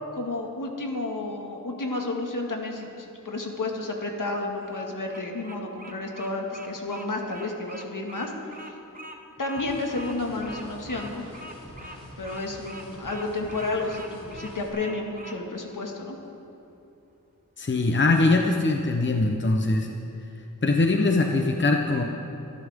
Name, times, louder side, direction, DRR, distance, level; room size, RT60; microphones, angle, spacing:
voice 1, 0.2-8.6 9.4-11.2 12.2-16.2, left 2 dB, 70° left, 1 dB, 2.0 m, -31 dB
Bird vocalization bird call bird song, 4.5-15.4, equal, 25° right, 1.2 m, -44 dB
sound 1, 9.5-14.7, equal, 15° left, 4.4 m, -45 dB
voice 2, 17.6-19.9 20.6-22.1, left 2 dB, 35° left, 2 dB, 0.9 m, -22 dB
26.5 x 11.0 x 3.7 m, 2.8 s
wide cardioid pair, 70°, 34 cm